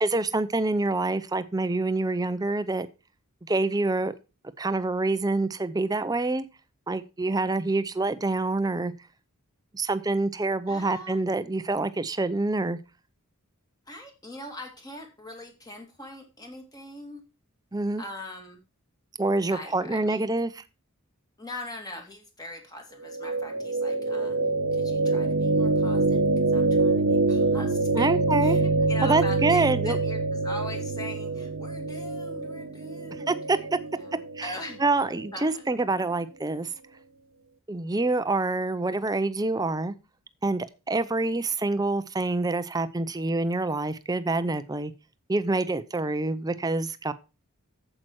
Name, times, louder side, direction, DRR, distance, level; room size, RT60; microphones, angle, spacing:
voice 1, 0.0-2.9 3.5-4.1 4.6-6.4 6.9-8.9 9.7-12.8 17.7-18.0 19.2-20.6 27.9-28.6 29.0-30.0 33.3-33.6 34.4-34.5 34.8-36.7 37.7-39.9 40.4-44.9 45.3-47.1, right 2 dB, 15° right, 13 dB, 0.6 m, -26 dB
voice 2, 10.7-11.2 13.9-17.2 18.0-18.6 19.5-20.2 21.4-24.4 24.7-28.1 28.4-33.4 33.9-34.8 35.3-35.6 45.9-46.1, left 1 dB, 15° left, 3 dB, 2.3 m, -41 dB
sound 1, 23.1-35.2, right 3 dB, 65° right, 0.9 m, -25 dB
8.6 x 7.7 x 4.6 m, 0.30 s
head